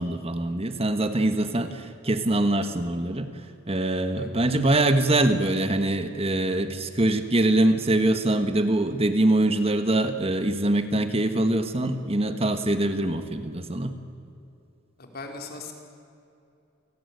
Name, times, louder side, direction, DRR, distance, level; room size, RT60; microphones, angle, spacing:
voice 1, 0.0-3.3 3.7-14.0, right 1 dB, 30° right, 9 dB, 1.4 m, -23 dB
voice 2, 15.0-15.7, left 3 dB, 50° left, 3 dB, 4.0 m, -38 dB
29.0 x 18.5 x 9.5 m, 2.6 s
head